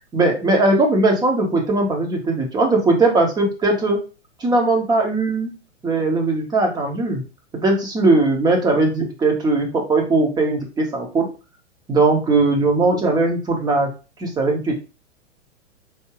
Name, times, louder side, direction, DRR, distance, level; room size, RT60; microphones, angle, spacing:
voice 1, 0.1-4.0 4.4-5.5 5.8-7.2 7.5-11.3 11.9-13.9 14.2-14.7, right 2 dB, 10° right, 1 dB, 0.9 m, -19 dB
4.8 x 2.7 x 2.9 m, 0.31 s
figure-of-eight pair, 110°, 36 cm